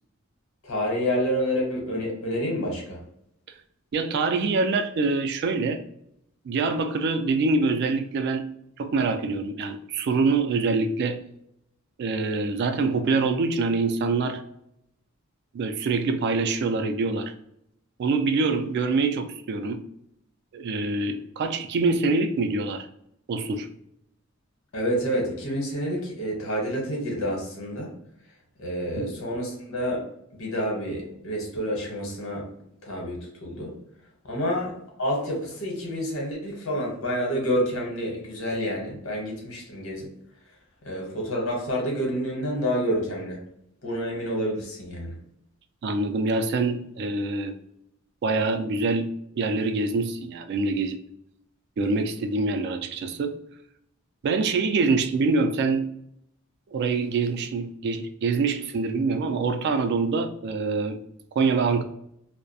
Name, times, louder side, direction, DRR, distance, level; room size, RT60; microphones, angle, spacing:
voice 1, 0.6-3.0 24.7-27.9 28.6-30.0 30.3-32.5 32.8-33.7 34.2-40.1 40.8-43.4 43.8-45.2, equal, 85° left, -1 dB, 0.9 m, -28 dB
voice 2, 3.9-5.8 6.5-8.5 8.8-11.2 12.0-14.4 15.5-17.3 18.0-19.8 20.5-22.9 23.3-23.7 29.0-29.1 45.8-47.6 48.2-51.0 51.8-53.3 54.2-55.9 56.7-61.0 61.4-61.8, right 3 dB, 55° right, 8 dB, 0.3 m, -25 dB
2.3 x 2.1 x 2.6 m, 0.75 s
head